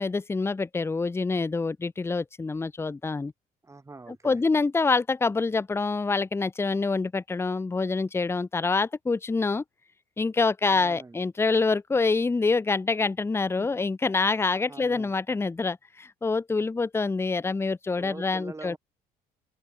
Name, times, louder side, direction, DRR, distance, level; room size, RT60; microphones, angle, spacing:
voice 1, 0.0-3.3 4.2-9.6 10.2-18.8, left 4 dB, 15° left, 0.8 m, -26 dB
voice 2, 3.6-4.4 10.7-11.2 13.6-13.7 14.7-15.1 18.0-18.8, right 3 dB, 15° right, 4.6 m, -44 dB
cardioid pair, 110°, 17 cm